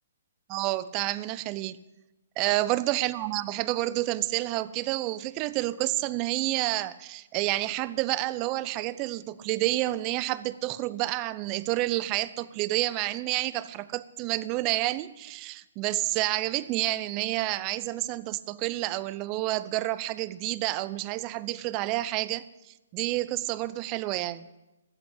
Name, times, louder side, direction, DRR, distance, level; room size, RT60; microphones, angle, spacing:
voice 1, 0.5-1.8 2.4-22.4 22.9-24.5, right 17 dB, 30° right, 17 dB, 0.5 m, -29 dB
13.5 x 7.8 x 8.0 m, 1.0 s
hypercardioid pair, 135°, 0 cm